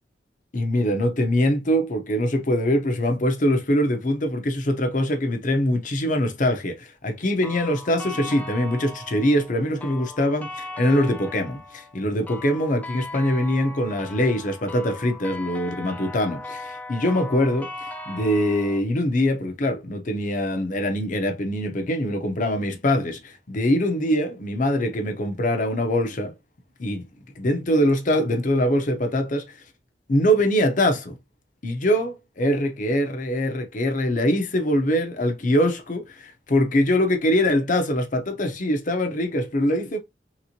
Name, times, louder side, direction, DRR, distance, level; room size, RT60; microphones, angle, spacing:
voice 1, 0.5-26.3 26.8-27.0 27.4-29.6 30.1-31.2 31.6-40.0, equal, 45° left, 0.7 m, -23 dB
sound 1, 7.4-18.8, left 2 dB, 10° left, 0.4 m, -38 dB
3.2 x 3.0 x 2.7 m
head